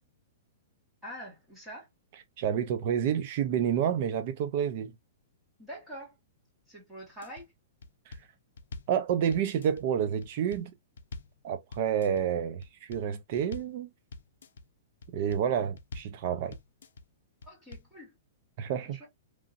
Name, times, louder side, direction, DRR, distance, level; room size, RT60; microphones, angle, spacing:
voice 1, 1.0-1.9 5.6-6.2 6.7-7.5 17.4-18.1 18.8-19.1, equal, 5° right, 1.1 m, -45 dB
voice 2, 2.4-4.9 8.1-8.2 8.9-10.7 11.4-13.9 15.1-16.6 18.6-19.0, right 8 dB, 30° right, 0.3 m, -29 dB
sound 1, 7.0-7.4 7.8-9.0 9.3-9.8 10.2-11.4 11.7-12.2 12.6-13.1 13.4-13.8 14.1-14.6 15.0-15.5 15.8-16.2 16.5-17.0 17.4-17.9, left 3 dB, 80° left, 0.5 m, -45 dB
3.0 x 2.5 x 2.4 m
hypercardioid pair, 180°, 0 cm